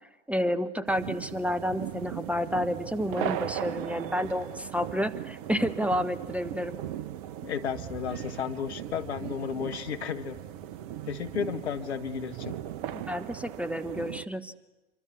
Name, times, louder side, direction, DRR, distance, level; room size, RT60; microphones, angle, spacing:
voice 1, 0.3-6.8 12.9-14.5, equal, 5° right, 11 dB, 1.0 m, -30 dB
sound 1, 0.9-14.2, right 11 dB, 50° right, 1.0 m, -38 dB
voice 2, 7.4-10.4 11.1-12.6, left 7 dB, 65° left, 9 dB, 1.6 m, -33 dB
26.5 x 24.0 x 8.4 m, 1.1 s
figure-of-eight pair, 80°, 35 cm